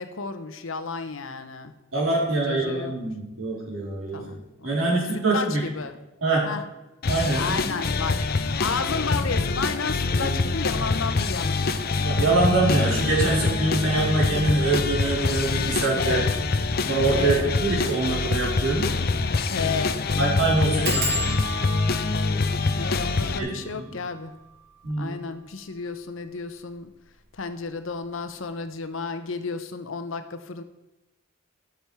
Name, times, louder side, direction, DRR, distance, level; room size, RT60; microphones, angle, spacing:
voice 1, 0.0-1.7 2.4-2.9 4.1-5.0 5.3-5.9 6.4-6.6 7.3-11.9 16.0-16.4 17.1-17.5 19.5-20.0 20.7-21.1 22.8-24.3 25.0-26.9 27.3-30.6, left 4 dB, 70° left, 10 dB, 0.9 m, -32 dB
voice 2, 1.9-5.6 6.2-6.5 7.1-7.6 10.1-10.4 12.0-16.2 16.9-18.9 20.2-21.3 23.4-23.8 24.8-25.2, right 2 dB, 75° right, -3 dB, 3.4 m, -24 dB
sound 1, 7.0-23.4, left 3 dB, 45° left, 0.6 m, -25 dB
sound 2, 17.8-17.9 18.3-18.4 18.6-18.7 19.3-19.5 19.8-19.9 20.8-26.1 26.8-27.3 27.6-28.0 28.2-28.3, right 1 dB, 50° right, 2.0 m, -35 dB
13.0 x 7.1 x 4.6 m, 0.99 s
head